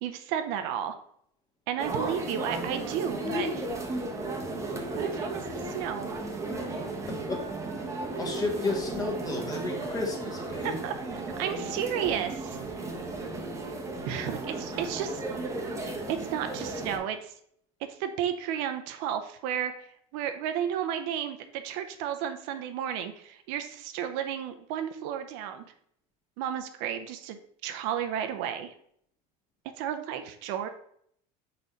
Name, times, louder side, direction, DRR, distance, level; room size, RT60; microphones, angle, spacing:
voice 1, 0.0-1.0 1.7-3.6 5.0-6.2 10.6-12.6 14.1-15.2 16.1-17.3 18.0-19.7 20.1-25.7 26.4-28.7 29.8-30.7, right 9 dB, 70° right, 8 dB, 0.7 m, -33 dB
sound 1, 1.8-17.0, right 2 dB, 15° right, 1.0 m, -34 dB
voice 2, 7.1-7.4 7.7-7.8 8.1-10.8, left 3 dB, 20° left, 1 dB, 1.5 m, -32 dB
4.4 x 4.2 x 5.0 m, 0.66 s
supercardioid pair, 125°, 18 cm